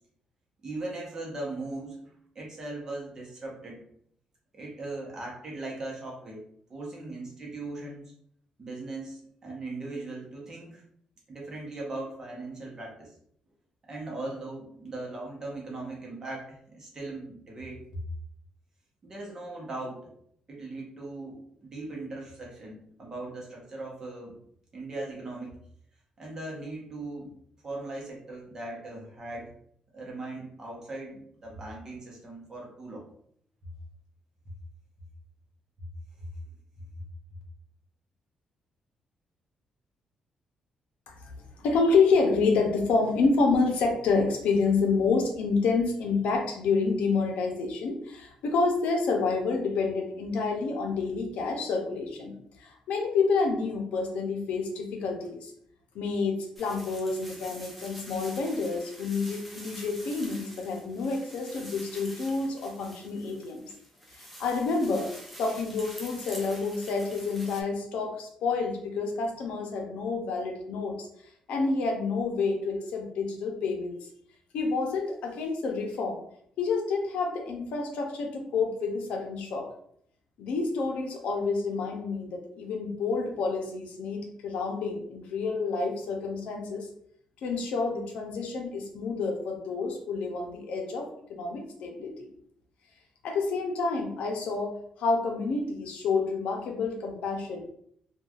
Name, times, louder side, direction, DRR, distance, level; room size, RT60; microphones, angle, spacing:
voice 1, 0.6-2.0 2.3-3.8 4.5-8.1 8.6-10.8 11.3-13.1 13.9-18.0 19.0-20.1 20.5-24.4 24.7-25.5 26.2-27.3 27.6-29.5 29.9-33.0 36.2-36.3, right 2 dB, 30° right, -2 dB, 0.8 m, -39 dB
voice 2, 41.6-55.5 55.9-63.7 64.1-71.1 71.5-74.0 74.5-76.2 76.6-79.7 80.4-86.9 87.4-92.3 93.2-97.7, left 4 dB, 85° left, 2 dB, 0.6 m, -28 dB
sound 1, 56.6-67.6, equal, ahead, 0.4 m, -47 dB
3.1 x 2.3 x 2.3 m, 0.67 s
cardioid pair, 160°, 2 cm